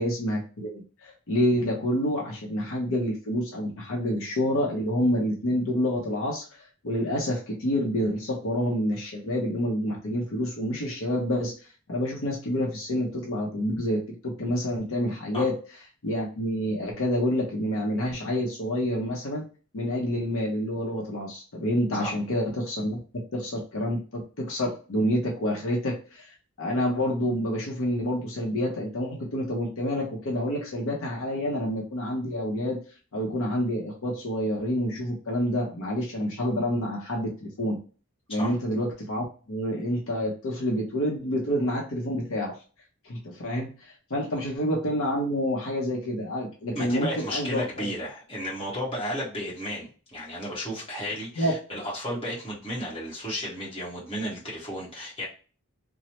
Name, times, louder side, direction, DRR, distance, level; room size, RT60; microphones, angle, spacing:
voice 1, 0.0-11.5 11.9-15.5 16.0-19.4 19.7-32.8 33.1-37.8 38.3-42.6 43.0-47.9 51.4-51.5, equal, 70° left, -1 dB, 0.6 m, -28 dB
voice 2, 46.7-55.3, equal, 25° left, -6 dB, 1.1 m, -33 dB
3.0 x 2.0 x 2.8 m, 0.37 s
head